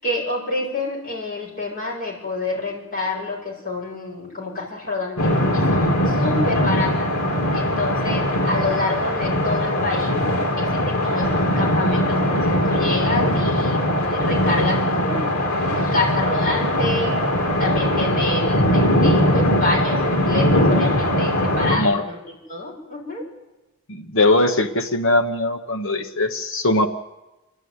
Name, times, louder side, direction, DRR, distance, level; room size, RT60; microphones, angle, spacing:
voice 1, 0.0-7.1 7.5-10.2 10.6-15.5 15.8-17.2 17.6-22.2 22.5-23.2, left 2 dB, 40° left, -2 dB, 7.0 m, -28 dB
sound 1, 5.2-21.8, equal, 85° left, 3.4 m, -20 dB
voice 2, 21.7-22.0 23.9-26.9, left 2 dB, 60° left, 6 dB, 1.1 m, -20 dB
29.5 x 12.0 x 9.6 m, 1.1 s
head